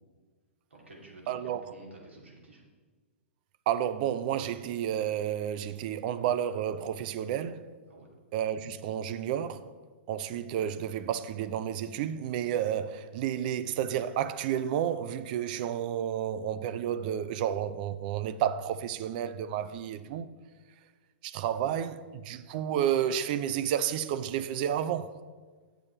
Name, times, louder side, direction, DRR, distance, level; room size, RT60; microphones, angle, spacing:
voice 1, 0.7-2.6 7.9-8.1, right 2 dB, 85° right, 2.5 m, -51 dB
voice 2, 1.3-1.7 3.7-7.7 8.3-9.7 10.1-20.3 21.2-25.1, right 10 dB, 45° right, 0.5 m, -31 dB
9.6 x 6.9 x 4.4 m
figure-of-eight pair, 110°, 6 cm